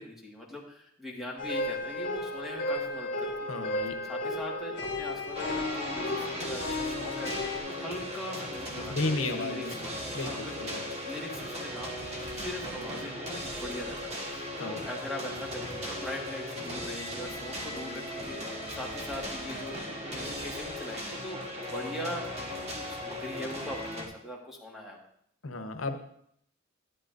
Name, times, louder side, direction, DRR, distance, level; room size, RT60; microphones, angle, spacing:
voice 1, 0.0-3.5 4.1-7.3 7.7-19.7 20.1-25.0, left 1 dB, ahead, -2 dB, 1.7 m, -41 dB
sound 1, 1.4-7.6, left 2 dB, 60° left, 1.7 m, -34 dB
voice 2, 3.5-4.0 8.9-9.7 10.1-10.8 14.6-14.8 25.4-26.0, left 2 dB, 85° left, 6 dB, 1.0 m, -33 dB
sound 2, 5.3-24.1, left 1 dB, 30° right, 1.5 m, -37 dB
11.0 x 10.5 x 2.6 m, 0.69 s
head